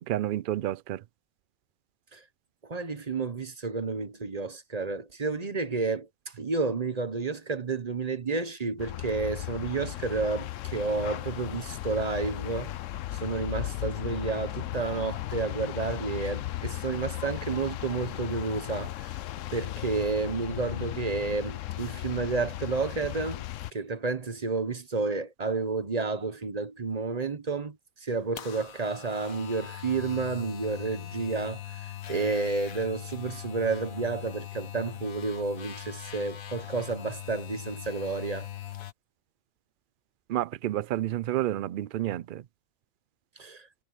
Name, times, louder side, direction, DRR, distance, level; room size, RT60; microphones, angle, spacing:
voice 1, 0.1-1.0 40.3-42.4, right 13 dB, 75° right, 0.4 m, -30 dB
voice 2, 2.7-6.1 6.4-12.7 13.1-19.1 19.5-23.4 23.7-27.8 28.0-38.5 43.4-43.7, right 4 dB, 30° right, 1.0 m, -31 dB
sound 1, 8.8-23.7, left 14 dB, 70° left, 0.9 m, -36 dB
sound 2, 28.1-38.9, left 12 dB, 90° left, 1.4 m, -41 dB
omnidirectional pair, 1.4 m